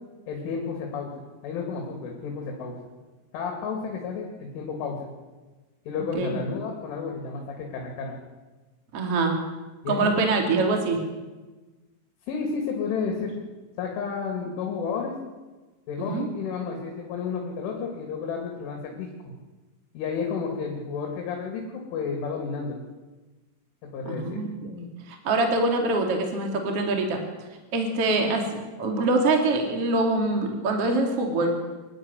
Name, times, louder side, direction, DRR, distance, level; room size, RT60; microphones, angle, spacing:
voice 1, 0.3-1.1 1.4-2.8 3.3-5.0 5.9-8.2 9.8-10.1 12.3-13.3 13.8-15.1 15.9-19.1 19.9-22.8 23.9-24.4, left 5 dB, 70° left, 1 dB, 4.8 m, -31 dB
voice 2, 8.9-9.4 9.9-11.0 16.0-16.3 24.0-27.2 27.7-31.5, right 2 dB, 40° right, 2 dB, 2.7 m, -24 dB
23.5 x 12.5 x 9.8 m, 1.2 s
omnidirectional pair, 5.8 m